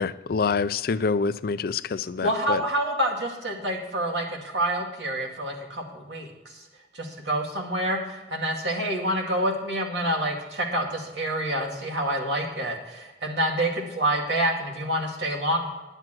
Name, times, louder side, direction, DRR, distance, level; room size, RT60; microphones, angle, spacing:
voice 1, 0.0-2.6, left 5 dB, 55° left, 14 dB, 0.4 m, -26 dB
voice 2, 2.2-6.3 6.5-6.6 6.9-15.7, right 1 dB, 85° right, 0 dB, 2.4 m, -27 dB
10.5 x 8.0 x 6.1 m, 1.2 s
head